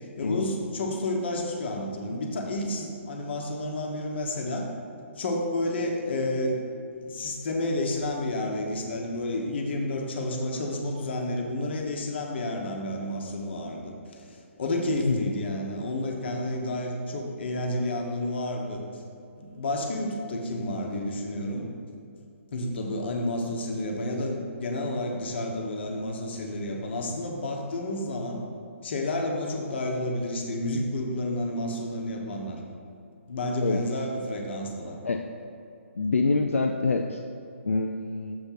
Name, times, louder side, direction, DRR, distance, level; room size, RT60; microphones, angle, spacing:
voice 1, 0.2-4.7 5.2-6.6 7.1-18.8 19.4-21.7 22.5-28.4 28.8-32.6 33.3-35.0, left 1 dB, 55° left, 1 dB, 1.1 m, -30 dB
voice 2, 36.0-37.2 37.6-38.4, left 3 dB, 80° left, 3 dB, 0.4 m, -26 dB
6.9 x 3.4 x 5.8 m, 2.5 s
figure-of-eight pair, 140°, 7 cm